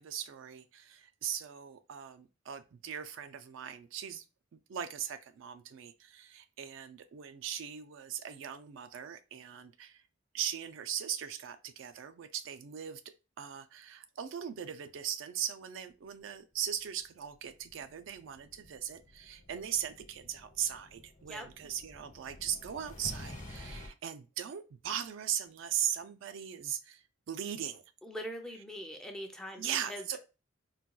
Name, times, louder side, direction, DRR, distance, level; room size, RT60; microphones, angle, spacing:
voice 1, 0.0-4.2 4.5-10.0 10.3-13.0 13.4-27.8 29.6-30.2, right 9 dB, 70° right, 0.4 m, -39 dB
sound 1, 17.5-23.9, left 1 dB, 40° left, 1.0 m, -50 dB
voice 2, 28.0-30.2, equal, 5° left, 0.5 m, -42 dB
4.0 x 2.2 x 2.3 m
head